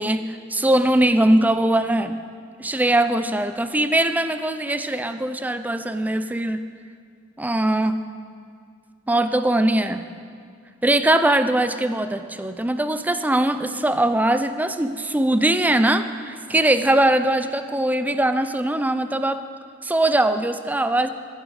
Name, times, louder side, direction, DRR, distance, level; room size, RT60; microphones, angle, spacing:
voice 1, 0.0-2.1 2.6-6.6 7.4-8.0 9.1-10.0 10.8-19.4 19.8-21.1, right 1 dB, 10° right, 10 dB, 0.4 m, -21 dB
13.5 x 10.5 x 4.8 m, 2.2 s
head